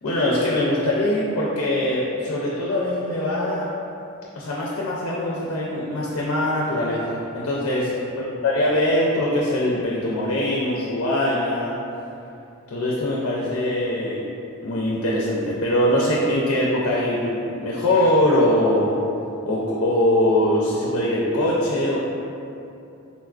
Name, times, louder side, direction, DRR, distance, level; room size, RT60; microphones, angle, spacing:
voice 1, 0.0-3.7 4.3-11.8 12.7-14.2 14.6-18.9 19.4-22.0, left 1 dB, 75° left, -4 dB, 0.4 m, -22 dB
3.9 x 2.3 x 2.3 m, 2.7 s
head